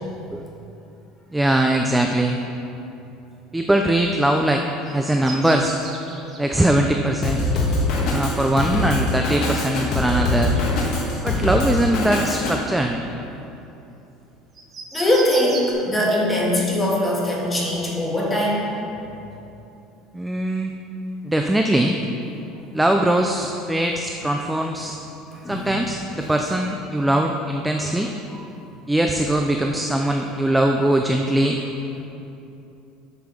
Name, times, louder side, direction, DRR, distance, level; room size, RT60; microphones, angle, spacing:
voice 1, 1.3-2.4 3.5-5.7 6.4-7.5 8.0-10.6 11.2-13.0 20.1-20.7 21.2-22.0 22.7-25.0 25.5-28.1 28.9-31.6 32.0-32.1, right 1 dB, 5° right, 3 dB, 0.3 m, -21 dB
sound 1, 4.6-6.4 8.2-8.3 10.1-10.6 11.0-11.4 11.9-12.1 12.5-13.5 14.5-15.7, right 3 dB, 25° right, 1.0 m, -36 dB
Drum kit, 7.2-12.5, left 2 dB, 50° left, 1.5 m, -23 dB
voice 2, 14.9-18.7 25.4-25.7 30.0-30.1, left 1 dB, 15° left, -4 dB, 1.6 m, -21 dB
8.6 x 5.7 x 6.1 m, 2.9 s
cardioid pair, 165°, 0 cm